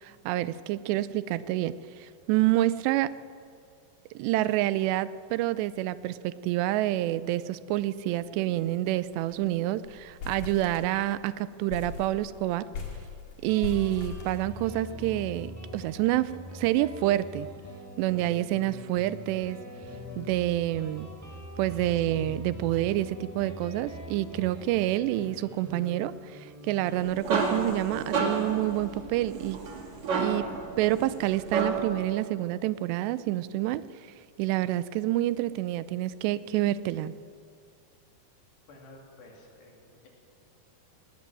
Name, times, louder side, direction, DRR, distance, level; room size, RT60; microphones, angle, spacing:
voice 1, 0.0-3.1 4.2-12.7 13.4-17.5 18.0-19.6 20.2-21.1 21.6-29.6 30.2-30.5 30.8-33.9 34.4-37.1, right 15 dB, 85° right, 16 dB, 2.8 m, -28 dB
sound 1, 8.2-8.4 8.7-8.8 9.1-9.5 9.8-11.2 11.7-15.0, left 5 dB, 55° left, 3.3 m, -40 dB
Guitar, 13.5-30.7, left 1 dB, 5° right, 2.7 m, -44 dB
sound 2, 26.8-32.0, right 4 dB, 45° right, 3.5 m, -31 dB
voice 2, 38.7-40.1, left 2 dB, 75° left, 0 dB, 5.3 m, -52 dB
19.5 x 19.0 x 7.6 m, 2.3 s
omnidirectional pair, 4.9 m